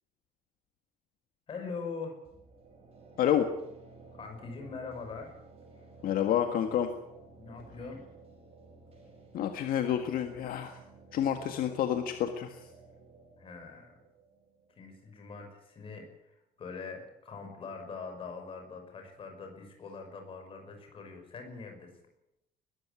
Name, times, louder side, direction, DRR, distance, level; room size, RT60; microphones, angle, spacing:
voice 1, 1.5-2.2 4.1-5.3 7.4-8.0 13.4-14.0 14.8-21.9, left 4 dB, 35° left, 4 dB, 5.6 m, -43 dB
sound 1, 2.2-15.9, right 3 dB, 35° right, 5.9 m, -55 dB
voice 2, 3.2-3.5 6.0-6.9 9.3-10.8 11.1-12.6, left 10 dB, 60° left, 6 dB, 1.8 m, -29 dB
21.0 x 14.0 x 9.6 m, 0.87 s
cardioid pair, 175°, 17 cm